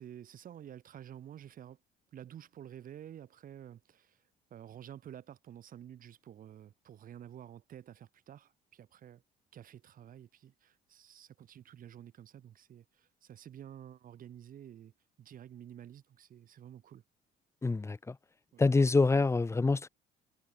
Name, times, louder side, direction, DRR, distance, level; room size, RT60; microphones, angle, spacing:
voice 1, 0.0-1.8 2.1-9.2 9.5-14.9 15.2-17.0 18.5-18.6, right 10 dB, 55° right, 5.5 m, -50 dB
voice 2, 17.6-18.2 18.6-19.9, left 3 dB, 15° left, 1.0 m, -26 dB
cardioid pair, 110°, 17 cm